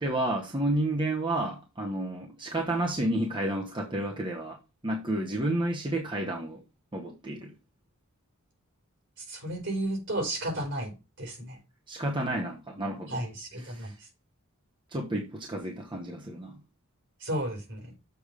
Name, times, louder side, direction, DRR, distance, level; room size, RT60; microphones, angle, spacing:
voice 1, 0.0-4.6 4.8-6.6 6.9-7.5 11.9-13.2 13.6-13.9 14.9-16.6, right 1 dB, 20° right, 1.1 m, -31 dB
voice 2, 9.2-11.6 13.1-14.1 17.2-17.9, right 1 dB, 60° right, 4.1 m, -33 dB
7.2 x 4.9 x 5.0 m
head